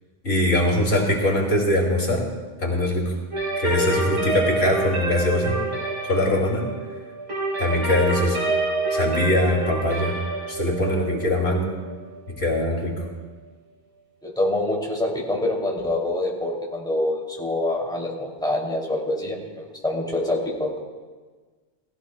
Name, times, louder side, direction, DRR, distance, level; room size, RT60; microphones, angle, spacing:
voice 1, 0.2-2.3 2.6-3.1 3.6-5.6 6.1-6.7 7.6-8.4 8.9-10.2 10.5-11.7 12.3-13.0, left 1 dB, 80° left, -2 dB, 2.9 m, -22 dB
sound 1, 3.3-13.0, right 2 dB, 75° right, 4.3 m, -27 dB
voice 2, 14.2-20.8, left 1 dB, 5° left, -3 dB, 2.7 m, -26 dB
20.0 x 15.5 x 2.3 m, 1.4 s
omnidirectional pair, 1.1 m